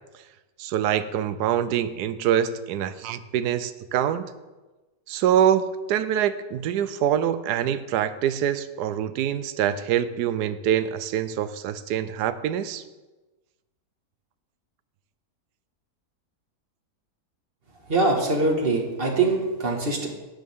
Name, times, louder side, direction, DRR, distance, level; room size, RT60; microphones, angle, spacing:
voice 1, 0.6-4.2 5.1-12.8, right 10 dB, 85° right, 12 dB, 1.2 m, -25 dB
voice 2, 17.9-20.1, right 3 dB, 35° right, 0 dB, 1.9 m, -23 dB
12.5 x 9.6 x 3.6 m, 1.2 s
omnidirectional pair, 1.7 m